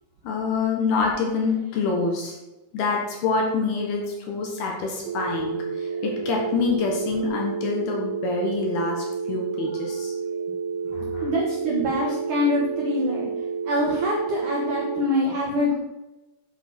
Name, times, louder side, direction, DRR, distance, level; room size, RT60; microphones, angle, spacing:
voice 1, 0.2-2.4 2.7-10.1 10.9-11.3, left 4 dB, 65° left, 0 dB, 3.0 m, -26 dB
sound 1, 5.1-15.1, right 5 dB, 80° right, 2.9 m, -30 dB
voice 2, 11.2-13.3 13.6-15.7, left 1 dB, 65° right, -3 dB, 2.1 m, -24 dB
8.6 x 7.9 x 6.2 m, 1.0 s
omnidirectional pair, 5.7 m